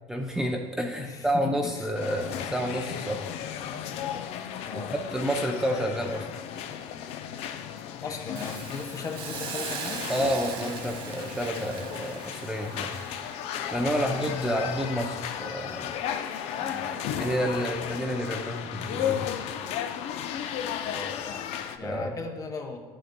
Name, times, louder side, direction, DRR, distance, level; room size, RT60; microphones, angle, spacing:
voice 1, 0.1-3.3 4.7-6.3 10.1-12.9 13.7-16.0 17.1-19.3 21.8-22.2, equal, 5° right, 1 dB, 0.5 m, -29 dB
voice 2, 1.0-1.9 4.6-4.9 8.0-10.1 13.7-14.3 16.6-17.0 20.8-22.8, left 4 dB, 30° left, 4 dB, 0.8 m, -38 dB
sound 1, 1.9-21.8, left 9 dB, 60° left, 0.5 m, -35 dB
Hiss, 8.4-15.4 15.8-15.9, right 5 dB, 45° right, 1.0 m, -40 dB
10.5 x 6.4 x 2.2 m, 1.4 s
supercardioid pair, 120°, 12 cm